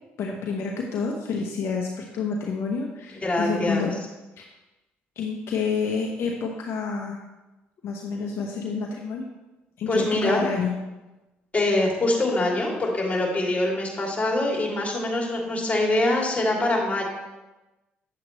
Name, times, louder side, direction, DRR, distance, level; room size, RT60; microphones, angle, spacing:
voice 1, 0.2-4.0 4.4-4.5 5.2-7.2 7.8-9.2 9.8-10.8, left 5 dB, 65° left, 0 dB, 1.0 m, -28 dB
voice 2, 3.2-3.9 9.9-10.4 11.5-17.0, left 1 dB, 30° left, -2 dB, 2.8 m, -24 dB
8.8 x 7.4 x 3.2 m, 1.1 s
supercardioid pair, 65°, 5 cm